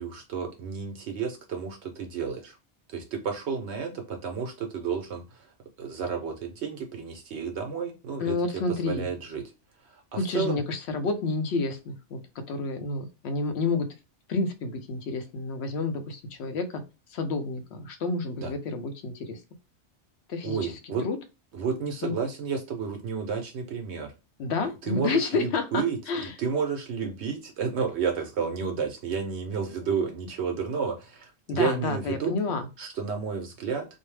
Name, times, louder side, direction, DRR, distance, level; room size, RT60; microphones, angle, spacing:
voice 1, 0.0-2.6 2.9-5.5 5.8-8.4 8.7-9.4 9.8-10.6 18.4-18.5 20.4-21.0 21.5-24.1 24.8-32.3 32.8-33.9, right 6 dB, 75° right, 4 dB, 0.9 m, -31 dB
voice 2, 8.2-9.1 10.2-12.2 12.5-13.9 14.3-16.6 17.1-19.4 20.3-20.7 21.0-21.2 22.0-22.2 24.4-26.3 31.5-32.7, left 3 dB, 70° left, 7 dB, 0.9 m, -29 dB
2.6 x 2.0 x 3.1 m, 0.28 s
omnidirectional pair, 1.2 m